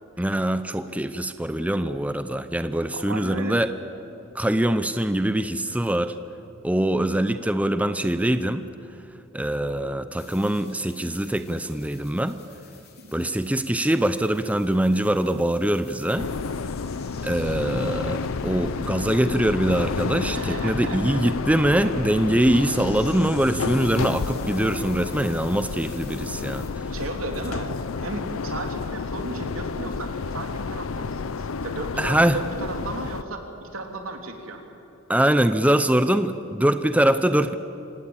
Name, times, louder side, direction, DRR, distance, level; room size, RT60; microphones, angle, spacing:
voice 1, 0.2-3.7 4.3-6.1 6.6-8.6 9.3-12.4 13.1-16.3 17.2-26.7 32.0-32.4 35.1-37.5, right 1 dB, 5° right, 11 dB, 0.6 m, -23 dB
voice 2, 2.9-3.6 5.7-5.8 13.0-13.3 20.3-21.3 26.9-27.7 28.0-34.6, right 2 dB, 85° right, 3 dB, 3.2 m, -35 dB
sound 1, 10.2-26.7, left 5 dB, 50° left, 3.7 m, -49 dB
sound 2, 16.2-33.2, left 4 dB, 85° left, 0.6 m, -30 dB
25.5 x 18.5 x 8.8 m, 2.8 s
head